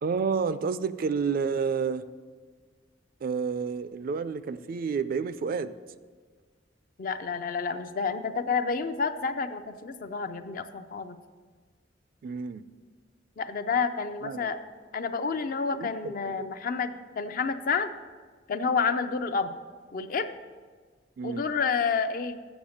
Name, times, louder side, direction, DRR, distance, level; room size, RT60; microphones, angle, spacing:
voice 1, 0.0-2.1 3.2-5.7 12.2-12.6 14.2-14.5 15.7-16.5 21.2-21.4, right 5 dB, 50° right, 14 dB, 0.3 m, -30 dB
voice 2, 7.0-11.2 13.4-14.6 14.9-17.9 18.5-19.6 19.9-20.4 21.2-22.4, left 5 dB, 50° left, 10 dB, 0.5 m, -29 dB
7.2 x 7.0 x 6.3 m, 1.5 s
head